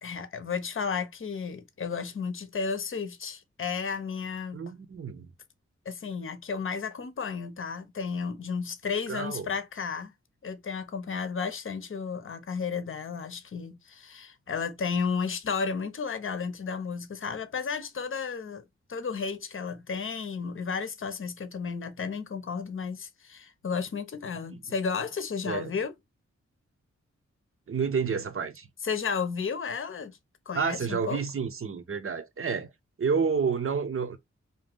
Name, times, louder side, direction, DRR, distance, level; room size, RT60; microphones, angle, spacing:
voice 1, 0.0-4.6 5.9-10.1 10.4-18.6 18.9-25.9 28.8-30.1 30.5-31.2, left 5 dB, 45° left, 0.7 m, -33 dB
voice 2, 4.5-5.3 9.1-9.5 24.5-24.6 25.4-25.7 27.7-28.7 30.5-32.7 33.0-34.2, right 5 dB, 45° right, 0.8 m, -29 dB
2.7 x 2.4 x 3.5 m
cardioid pair, 45°, 29 cm